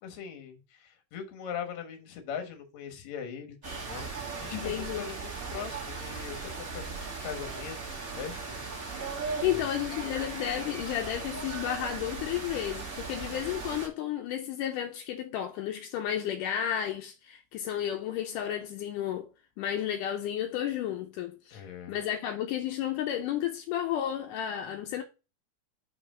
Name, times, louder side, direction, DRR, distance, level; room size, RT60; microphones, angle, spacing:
voice 1, 0.0-8.6 9.4-9.7 21.5-22.0, left 7 dB, 65° left, 2.4 m, -41 dB
sound 1, 3.6-13.9, right 4 dB, 35° right, 1.7 m, -38 dB
voice 2, 4.5-5.1 9.2-19.3 19.6-25.0, left 10 dB, 80° left, 2.2 m, -32 dB
5.5 x 4.8 x 5.0 m
omnidirectional pair, 3.8 m